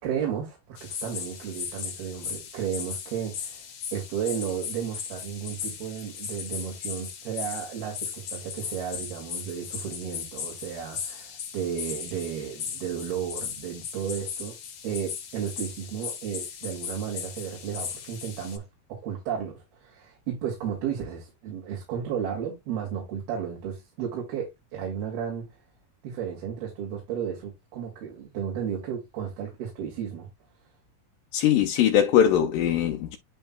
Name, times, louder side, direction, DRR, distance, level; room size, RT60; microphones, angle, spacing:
voice 1, 0.0-3.7 3.9-14.6 14.8-18.6 18.9-25.5 26.0-30.3, right 8 dB, 85° right, 4.2 m, -33 dB
sound 1, 0.8-18.6, left 7 dB, 55° left, 1.9 m, -37 dB
voice 2, 31.3-33.2, left 10 dB, 75° left, 2.2 m, -21 dB
10.5 x 4.6 x 2.2 m
omnidirectional pair, 4.3 m